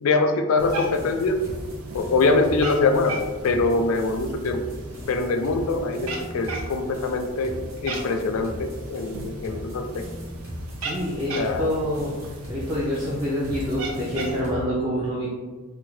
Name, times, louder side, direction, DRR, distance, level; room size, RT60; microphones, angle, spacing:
voice 1, 0.0-1.4 1.9-3.2 3.4-4.7 5.1-7.5 7.8-10.1 11.3-11.7, left 3 dB, 75° left, 7 dB, 0.3 m, -23 dB
sound 1, 0.6-14.7, equal, 60° right, 1.1 m, -39 dB
Cat, 0.6-14.4, right 2 dB, 80° right, 0.5 m, -37 dB
voice 2, 10.8-15.3, equal, 20° right, -6 dB, 0.4 m, -27 dB
3.4 x 2.0 x 3.1 m, 1.3 s
head